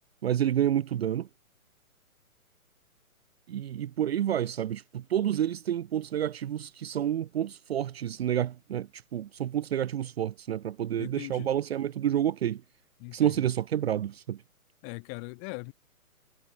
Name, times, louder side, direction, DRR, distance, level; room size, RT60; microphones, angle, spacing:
voice 1, 0.2-1.3 3.5-12.6 13.1-14.4, right 10 dB, 45° right, 0.9 m, -29 dB
voice 2, 11.0-11.5 13.0-13.4 14.8-15.7, left 39 dB, 25° left, 2.6 m, -40 dB
figure-of-eight pair, 135°, 44 cm